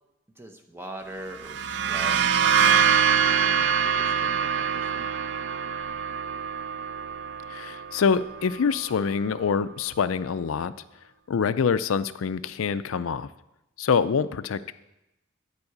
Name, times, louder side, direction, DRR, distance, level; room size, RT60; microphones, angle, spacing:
voice 1, 0.4-5.2, right 1 dB, 10° right, 5 dB, 0.7 m, -43 dB
sound 1, 1.3-8.9, right 7 dB, 55° right, 0.3 m, -25 dB
voice 2, 7.5-10.7 11.3-13.3 13.8-14.7, left 6 dB, 90° left, 14 dB, 0.4 m, -25 dB
9.7 x 4.8 x 7.9 m, 0.91 s
head